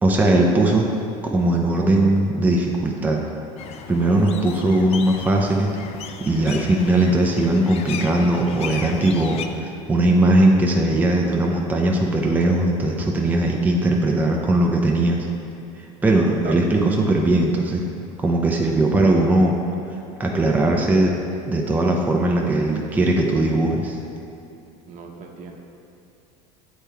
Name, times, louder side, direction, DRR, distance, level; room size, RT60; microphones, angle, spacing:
voice 1, 0.0-0.9 1.3-3.2 3.9-5.7 6.2-15.3 16.0-17.8 18.2-19.5 20.2-21.1 21.5-24.0, right 1 dB, 10° right, -1 dB, 0.6 m, -19 dB
sound 1, 3.6-9.5, left 7 dB, 45° left, 0.4 m, -35 dB
voice 2, 24.9-25.6, right 5 dB, 55° right, 1 dB, 0.9 m, -37 dB
8.1 x 3.5 x 4.4 m, 2.7 s
supercardioid pair, 105°, 15 cm